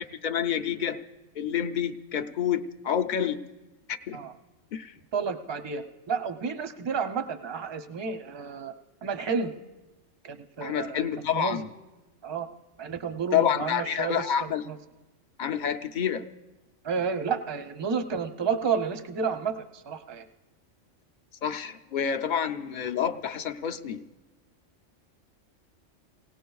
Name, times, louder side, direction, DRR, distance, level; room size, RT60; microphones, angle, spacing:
voice 1, 0.2-1.0 1.4-3.4 3.9-4.2 4.7-4.9 10.6-11.7 13.3-14.6 15.4-16.3 21.4-24.0, left 8 dB, 50° left, 6 dB, 0.6 m, -28 dB
voice 2, 5.1-8.7 9.0-9.5 10.2-11.1 11.3-11.6 12.2-12.5 12.8-14.8 16.8-20.2, right 6 dB, 30° right, 7 dB, 0.5 m, -31 dB
29.0 x 18.0 x 2.3 m, 1.1 s
omnidirectional pair, 1.3 m